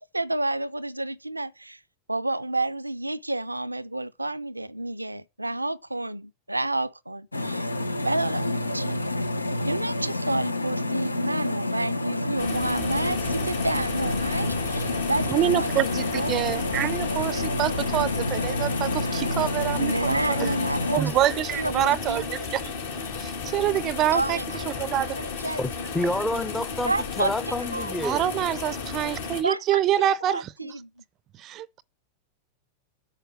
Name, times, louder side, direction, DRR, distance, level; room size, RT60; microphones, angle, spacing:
voice 1, 0.0-1.8 2.1-7.7 8.0-9.0 9.6-16.3 19.8-22.5 24.1-25.9 26.9-27.9 28.2-28.4 29.4-30.9, right 2 dB, 85° right, 0.5 m, -30 dB
sound 1, 7.3-21.0, left 2 dB, 80° left, 0.7 m, -29 dB
sound 2, 12.4-29.4, left 5 dB, 60° left, 2.6 m, -34 dB
voice 2, 15.3-20.5 20.9-25.2 28.0-30.7 31.4-31.8, right 12 dB, 35° right, 0.5 m, -26 dB
voice 3, 25.6-28.2, left 1 dB, 5° left, 0.6 m, -29 dB
9.0 x 6.6 x 6.3 m
figure-of-eight pair, 90°, 0 cm